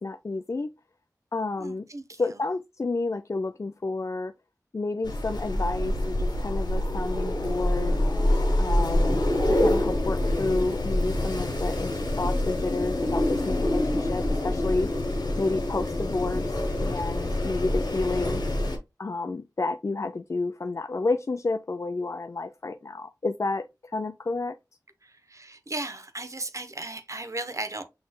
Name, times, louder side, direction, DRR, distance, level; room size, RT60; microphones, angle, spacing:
voice 1, 0.0-0.7 1.3-1.9 2.2-4.3 4.7-8.0 8.6-9.2 9.5-14.9 15.4-16.5 16.8-18.4 19.0-23.7 23.9-24.6, left 3 dB, 45° left, 0.3 m, -30 dB
voice 2, 1.6-2.4 25.0-27.8, right 2 dB, 45° right, 0.8 m, -36 dB
Wind, 5.0-18.8, left 1 dB, 80° left, 1.1 m, -26 dB
6.2 x 3.2 x 2.2 m
wide cardioid pair, 55°, 7 cm